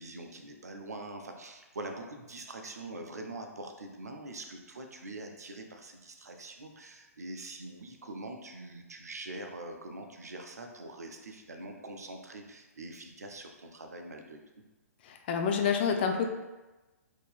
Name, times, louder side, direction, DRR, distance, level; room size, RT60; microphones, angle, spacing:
voice 1, 0.0-14.4, right 2 dB, 75° right, 4 dB, 0.5 m, -44 dB
voice 2, 15.0-16.3, left 6 dB, 40° left, 4 dB, 0.4 m, -28 dB
3.7 x 2.6 x 2.3 m, 1.1 s
figure-of-eight pair, 120°, 9 cm